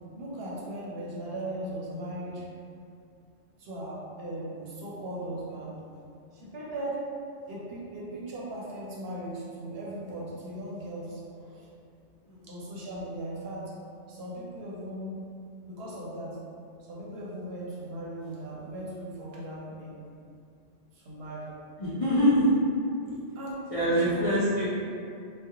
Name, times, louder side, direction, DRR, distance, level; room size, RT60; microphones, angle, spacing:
voice 1, 0.1-2.4 3.6-5.8 6.3-7.0 7.5-11.7 12.5-13.7 14.1-15.2 15.7-16.4 16.9-20.0 20.9-21.5 23.4-23.6 23.9-24.2, right 1 dB, 65° right, -6 dB, 0.8 m, -38 dB
voice 2, 21.8-22.5 23.0-23.1 23.7-24.8, equal, 50° left, -12 dB, 0.4 m, -24 dB
2.4 x 2.1 x 2.7 m, 2.4 s
omnidirectional pair, 1.2 m